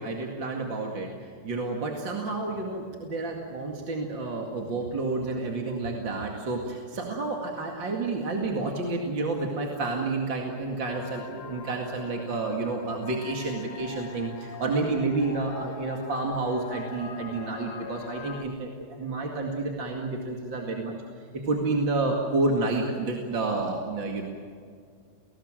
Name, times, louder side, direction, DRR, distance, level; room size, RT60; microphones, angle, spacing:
voice 1, 0.0-20.9 21.3-24.2, right 3 dB, 55° right, 1 dB, 2.9 m, -30 dB
sound 1, 10.8-18.5, left 6 dB, 75° left, 2.3 m, -42 dB
29.5 x 19.5 x 7.6 m, 2.2 s
omnidirectional pair, 2.4 m